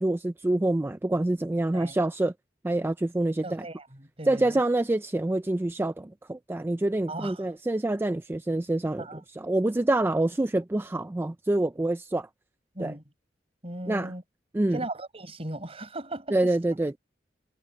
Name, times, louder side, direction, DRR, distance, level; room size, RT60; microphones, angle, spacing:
voice 1, 0.0-2.3 2.6-3.7 4.3-9.1 9.3-12.3 12.8-12.9 13.9-14.1 14.5-14.8 16.3-17.0, right 2 dB, 15° right, 0.3 m, -26 dB
voice 2, 3.4-4.6 7.1-7.5 9.0-9.2 12.7-13.0 13.6-14.2 14.7-16.5, right 2 dB, 35° right, 5.0 m, -37 dB
head